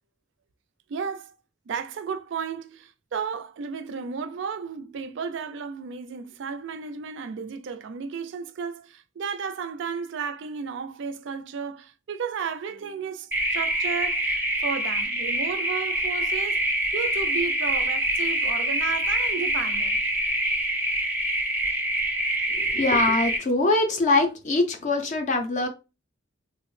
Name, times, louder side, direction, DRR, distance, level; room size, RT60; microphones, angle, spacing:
voice 1, 0.9-1.3 1.7-16.6 16.9-20.0, right 6 dB, 60° right, 0.4 m, -33 dB
sound 1, 13.3-23.4, right 1 dB, 10° right, 0.5 m, -25 dB
voice 2, 22.6-25.7, left 2 dB, 40° left, 0.4 m, -23 dB
3.4 x 2.0 x 3.1 m
head